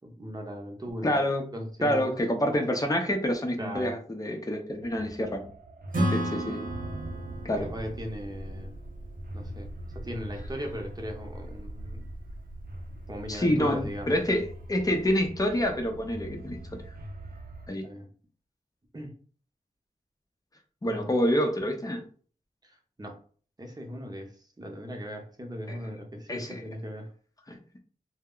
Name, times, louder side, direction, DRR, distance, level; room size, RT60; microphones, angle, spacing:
voice 1, 0.0-2.1 2.4-2.5 3.6-4.0 7.5-8.7 9.3-12.0 13.1-14.2 17.8-18.1 18.9-19.2 20.8-21.1 22.6-23.2 23.6-27.1, equal, 25° right, 2 dB, 0.8 m, -38 dB
voice 2, 1.0-1.4 1.8-5.5 6.1-6.6 7.4-7.7 13.3-16.8 17.7-17.9 20.8-22.0 25.7-25.8 26.3-26.6 27.5-27.6, equal, 25° left, 3 dB, 0.6 m, -27 dB
sound 1, 4.8-17.7, right 1 dB, 85° right, 0.4 m, -42 dB
Acoustic guitar / Strum, 5.9-9.5, right 1 dB, 65° right, 0.9 m, -33 dB
2.1 x 2.1 x 3.7 m, 0.43 s
cardioid pair, 45°, 15 cm